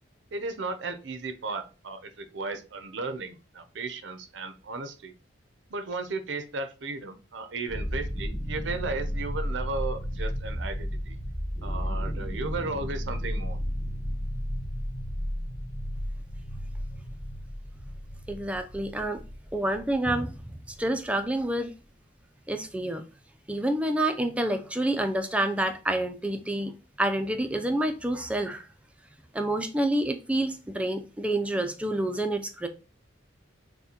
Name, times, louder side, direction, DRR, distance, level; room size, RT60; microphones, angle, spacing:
voice 1, 0.3-5.1 5.7-11.2 11.6-13.6, right 3 dB, 70° right, 0.6 m, -35 dB
sound 1, 7.7-21.6, equal, 20° left, 1.1 m, -33 dB
voice 2, 18.3-19.2 19.5-20.4 20.8-21.7 22.5-23.0 23.5-26.7 27.0-28.7 29.3-32.7, right 1 dB, 5° right, 0.4 m, -28 dB
6.5 x 2.2 x 2.8 m
head